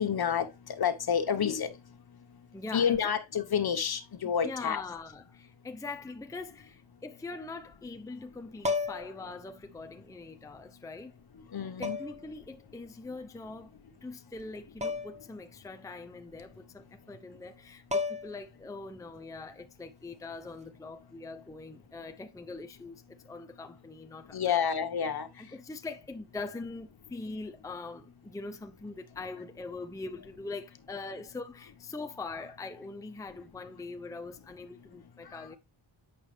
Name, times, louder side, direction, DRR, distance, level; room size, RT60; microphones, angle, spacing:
voice 1, 0.0-1.7 2.7-4.8 11.5-12.0 24.3-25.3 35.3-35.5, left 7 dB, 50° left, 1.2 m, -29 dB
voice 2, 2.5-3.1 4.2-11.1 11.8-13.7 14.0-24.5 25.4-35.6, left 3 dB, 5° left, 0.6 m, -42 dB
sound 1, 8.6-9.2 10.5-10.6 11.8-12.3 14.8-15.2 15.6-15.7 17.5-17.6 17.9-18.5 20.5-20.7, left 3 dB, 15° right, 1.4 m, -32 dB
8.3 x 6.2 x 3.3 m
cardioid pair, 85°, 46 cm